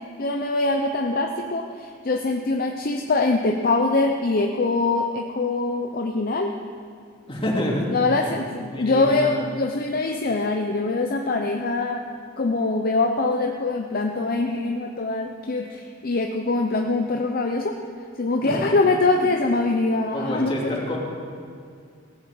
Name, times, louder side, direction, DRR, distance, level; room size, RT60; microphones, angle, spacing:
voice 1, 0.2-6.5 7.9-12.0 12.4-17.8 18.2-20.7, left 3 dB, 50° left, 3 dB, 0.7 m, -23 dB
voice 2, 7.3-7.9 8.2-8.3 8.7-9.3 18.4-18.7 19.1-19.3 20.1-21.0, left 1 dB, 30° left, -3 dB, 2.7 m, -27 dB
18.0 x 7.1 x 7.6 m, 2.3 s
head